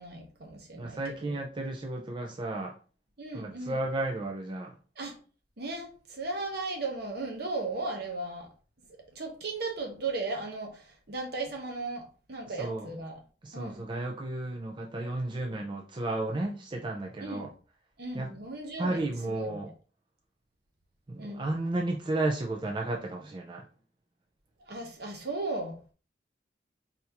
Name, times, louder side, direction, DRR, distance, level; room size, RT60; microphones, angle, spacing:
voice 1, 0.0-1.3 3.2-3.8 5.0-5.1 5.6-8.5 9.1-12.0 12.3-13.2 13.5-13.8 17.2-17.5 18.0-19.5 21.2-21.4 24.7-25.7, right 3 dB, 60° right, 1.1 m, -36 dB
voice 2, 0.8-2.7 3.3-4.8 12.5-13.0 13.4-17.5 18.1-18.3 18.8-19.7 21.1-23.7, right 2 dB, 25° right, 0.4 m, -33 dB
4.1 x 3.5 x 2.9 m
head